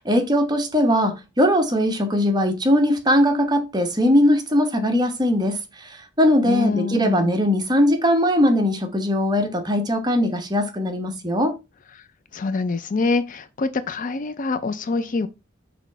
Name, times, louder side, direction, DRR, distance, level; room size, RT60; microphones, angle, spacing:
voice 1, 0.0-5.6 6.2-11.5, equal, 20° right, 1.0 m, -20 dB
voice 2, 6.4-7.4 12.0-12.1 12.3-15.3, left 4 dB, 40° left, 0.4 m, -25 dB
6.0 x 3.0 x 5.5 m
head